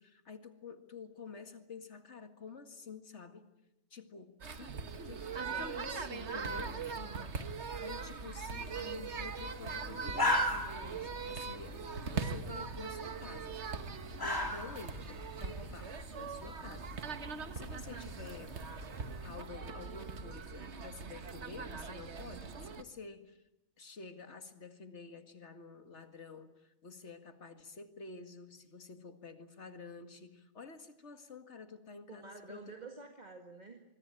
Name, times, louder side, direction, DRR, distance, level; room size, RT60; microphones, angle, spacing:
voice 1, 0.0-3.5 3.9-4.8 5.0-7.1 7.8-11.8 12.0-13.6 14.2-16.9 17.5-18.6 19.2-23.4 23.8-32.7, left 4 dB, 65° left, 7 dB, 2.3 m, -50 dB
sound 1, 4.4-22.8, right 5 dB, 65° right, 1.6 m, -41 dB
voice 2, 6.5-7.5 32.1-33.8, right 3 dB, 35° right, 4 dB, 2.0 m, -50 dB
sound 2, 8.4-19.3, left 1 dB, 15° left, 2.5 m, -40 dB
26.0 x 22.5 x 9.0 m, 0.89 s
omnidirectional pair, 1.3 m